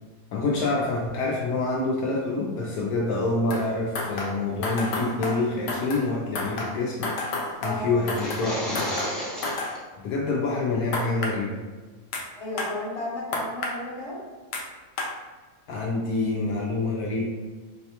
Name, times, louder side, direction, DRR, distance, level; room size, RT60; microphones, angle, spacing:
voice 1, 0.3-7.1 7.6-8.9 10.0-11.6 15.7-17.3, left 3 dB, 75° left, -3 dB, 1.0 m, -27 dB
sound 1, 3.5-3.7 3.9-6.1 6.3-8.5 8.7-9.7 10.9-11.4 12.1-12.2 12.6-12.7 13.3-13.8 14.5-14.6 15.0-15.1, left 2 dB, 90° left, 0.5 m, -31 dB
sound 2, 8.0-9.8, equal, ahead, 0.3 m, -32 dB
voice 2, 12.3-14.2, left 2 dB, 25° left, -7 dB, 1.0 m, -33 dB
4.0 x 2.2 x 2.8 m, 1.4 s
omnidirectional pair, 1.7 m